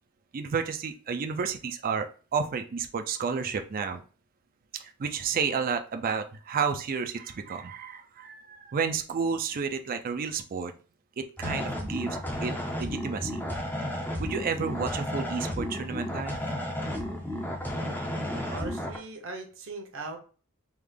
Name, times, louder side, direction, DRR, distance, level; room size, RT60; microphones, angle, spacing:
voice 1, 0.3-4.0 4.7-10.7 11.2-12.5 12.8-13.4 14.2-16.5, right 6 dB, 40° right, 7 dB, 0.4 m, -31 dB
sound 1, 11.4-19.0, left 1 dB, 10° left, 0.5 m, -33 dB
voice 2, 17.6-18.0 18.5-20.2, right 3 dB, 60° right, 4 dB, 0.8 m, -40 dB
3.4 x 2.4 x 3.3 m, 0.39 s
head